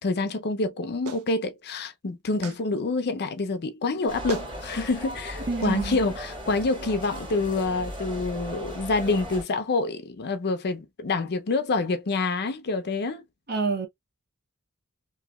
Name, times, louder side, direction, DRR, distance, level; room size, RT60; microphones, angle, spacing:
voice 1, 0.0-13.2, left 3 dB, 50° left, 0.5 m, -27 dB
Clapping, 1.1-1.3 2.4-2.6 3.9-4.0 4.3-4.5 5.6-5.8, right 3 dB, 70° right, 0.5 m, -35 dB
sound 1, 4.1-9.4, equal, 20° right, 1.7 m, -37 dB
voice 2, 5.5-6.0 13.5-13.9, right 4 dB, 45° right, 1.0 m, -27 dB
2.9 x 2.7 x 2.2 m
head